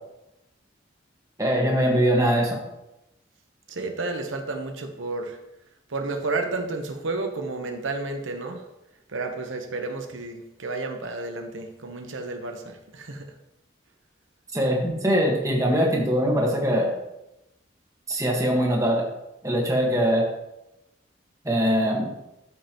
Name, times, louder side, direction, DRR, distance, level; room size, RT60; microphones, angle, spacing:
voice 1, 1.4-2.6 14.5-16.9 18.1-19.0 19.4-20.3 21.4-22.1, equal, 15° right, -1 dB, 1.5 m, -22 dB
voice 2, 3.7-5.4 5.9-8.6 9.1-13.3, right 3 dB, 90° right, 4 dB, 1.0 m, -31 dB
13.5 x 5.3 x 3.0 m, 0.91 s
head